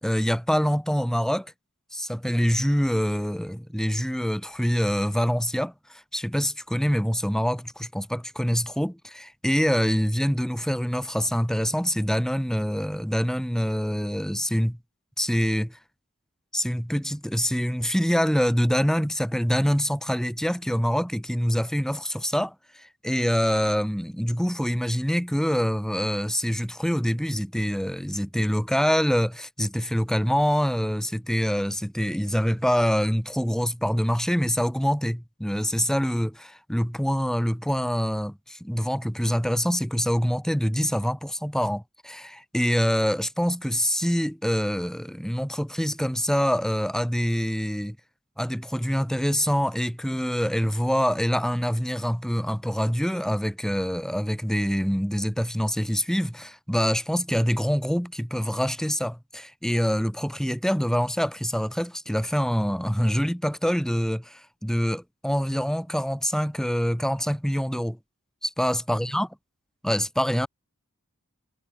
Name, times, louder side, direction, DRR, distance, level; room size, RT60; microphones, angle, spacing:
voice 1, 0.0-1.5 1.9-14.8 15.2-15.8 16.5-48.0 48.4-68.0 68.4-69.3 69.8-70.5, equal, ahead, 5.1 m, -25 dB
head